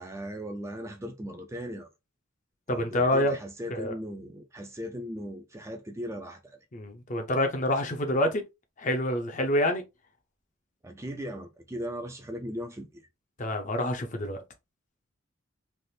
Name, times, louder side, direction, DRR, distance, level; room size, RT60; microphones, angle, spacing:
voice 1, 0.0-1.9 2.7-6.6 10.8-13.1, equal, 15° right, 0.4 m, -38 dB
voice 2, 2.7-3.3 3.7-3.9 6.7-8.4 8.8-9.8 13.4-14.4, left 1 dB, 35° left, 0.6 m, -27 dB
3.3 x 2.4 x 2.7 m
head